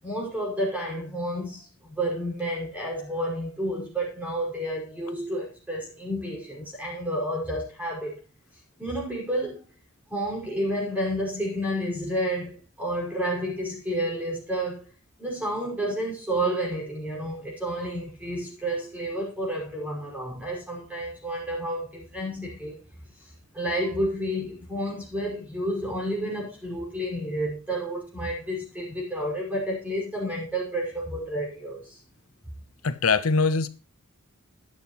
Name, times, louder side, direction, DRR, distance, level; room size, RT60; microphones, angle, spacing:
voice 1, 0.0-8.2 8.8-9.6 10.1-14.9 15.2-22.8 23.2-32.0, right 1 dB, 5° right, 5.3 m, -30 dB
voice 2, 32.8-33.7, left 4 dB, 80° left, 0.9 m, -22 dB
12.5 x 10.0 x 3.1 m
head